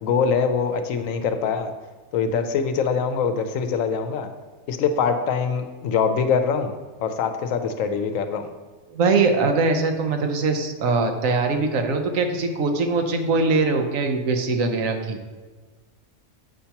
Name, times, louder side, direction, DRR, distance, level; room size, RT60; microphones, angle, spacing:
voice 1, 0.0-1.7 2.1-4.3 4.7-6.7 7.0-8.5, left 6 dB, 85° left, 8 dB, 1.0 m, -23 dB
voice 2, 8.9-15.2, right 3 dB, 85° right, 5 dB, 1.2 m, -22 dB
7.7 x 2.8 x 5.7 m, 1.4 s
omnidirectional pair, 1.3 m